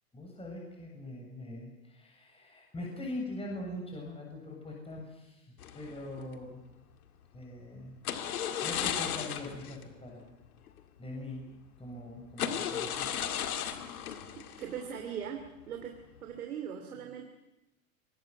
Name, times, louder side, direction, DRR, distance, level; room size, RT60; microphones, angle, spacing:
voice 1, 0.1-6.6 7.3-7.9 8.6-10.2 11.0-11.4 11.8-13.1, left 1 dB, 15° left, 0 dB, 7.4 m, -42 dB
sound 1, 5.6-6.4 8.0-9.8 10.1-10.2 10.7-10.8 11.5-11.6 12.3-15.5 15.8-16.2, left 9 dB, 85° left, 2.3 m, -35 dB
voice 2, 14.4-17.2, right 8 dB, 85° right, 4 dB, 2.9 m, -41 dB
25.0 x 20.0 x 7.9 m, 0.98 s
hypercardioid pair, 105°, 43 cm